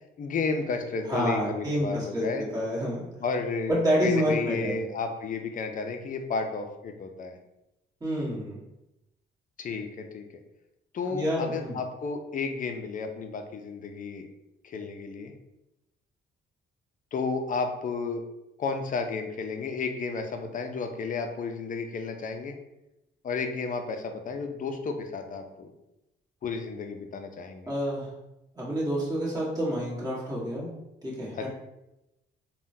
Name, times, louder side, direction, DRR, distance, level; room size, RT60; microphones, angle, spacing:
voice 1, 0.2-2.4 3.2-7.4 9.6-10.3 10.9-14.3 14.6-15.3 17.1-18.2 18.6-22.6 23.2-25.7 26.4-27.7 31.3-31.5, left 4 dB, 45° left, 5 dB, 0.4 m, -32 dB
voice 2, 1.1-3.1 3.7-4.8 8.0-8.6 11.1-11.8 27.7-28.1 28.5-30.7 31.0-31.5, equal, 20° right, -7 dB, 1.5 m, -28 dB
3.5 x 2.2 x 2.6 m, 0.92 s
cardioid pair, 90°, 20 cm